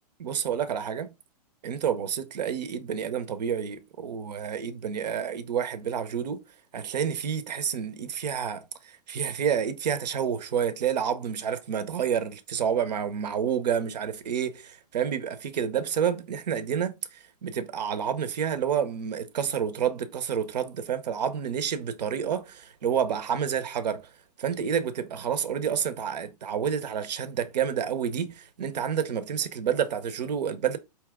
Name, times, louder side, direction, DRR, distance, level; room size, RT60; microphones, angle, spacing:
voice 1, 0.2-1.1 1.6-6.4 6.7-16.9 17.4-24.1 24.4-30.8, right 8 dB, 80° right, 0.8 m, -29 dB
4.8 x 2.9 x 3.5 m
hypercardioid pair, 120°, 21 cm